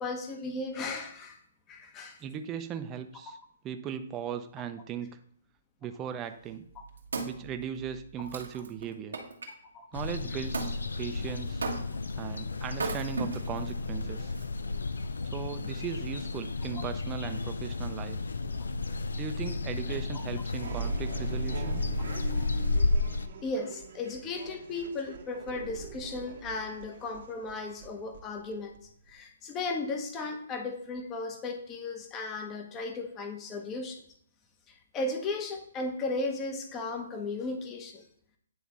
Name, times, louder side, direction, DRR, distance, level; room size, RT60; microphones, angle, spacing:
voice 1, 0.0-1.4 1.7-2.2 9.7-9.9 19.9-20.2 22.3-22.5 23.4-28.8 29.1-34.0 34.7-38.0, left 3 dB, 20° left, 5 dB, 1.0 m, -36 dB
voice 2, 2.2-3.4 3.6-5.2 5.8-6.7 7.2-9.2 9.9-11.6 12.2-14.3 15.2-18.2 19.1-21.8, right 8 dB, 20° right, 8 dB, 0.6 m, -38 dB
Wood, 6.5-9.5 10.5-10.8 11.6-12.1 12.7-13.7 14.4-14.5, right 4 dB, 85° right, 1.2 m, -36 dB
sound 1, 9.9-23.3, left 3 dB, 85° left, 0.5 m, -33 dB
sound 2, 20.5-29.2, right 5 dB, 60° right, 1.0 m, -41 dB
9.3 x 3.3 x 4.1 m, 0.64 s
hypercardioid pair, 140°, 0 cm